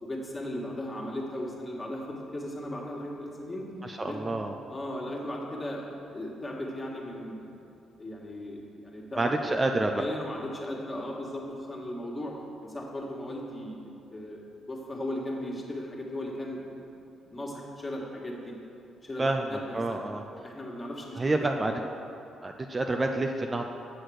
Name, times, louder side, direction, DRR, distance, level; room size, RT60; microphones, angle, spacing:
voice 1, 0.0-3.7 4.0-4.4 4.7-7.5 8.0-9.3 9.9-12.3 12.6-13.8 14.1-16.6 17.0-18.5 19.0-20.1 20.4-21.7, left 1 dB, 25° left, -2 dB, 1.8 m, -37 dB
voice 2, 3.8-4.5 9.2-10.0 19.2-19.4 19.7-20.2 21.2-21.7 22.4-23.7, right 2 dB, 25° right, 4 dB, 0.5 m, -28 dB
7.8 x 6.5 x 6.3 m, 2.6 s
cardioid pair, 90°, 0 cm